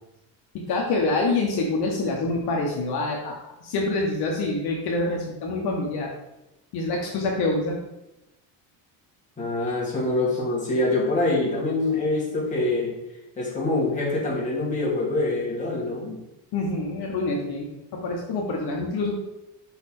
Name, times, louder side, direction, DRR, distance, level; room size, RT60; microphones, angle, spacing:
voice 1, 0.5-6.1 6.7-7.8 16.5-19.1, left 2 dB, 55° left, 0 dB, 1.0 m, -26 dB
voice 2, 9.4-12.9 13.4-16.2, left 2 dB, 15° left, -5 dB, 1.8 m, -25 dB
5.4 x 4.2 x 4.2 m, 0.93 s
cardioid pair, 165°, 44 cm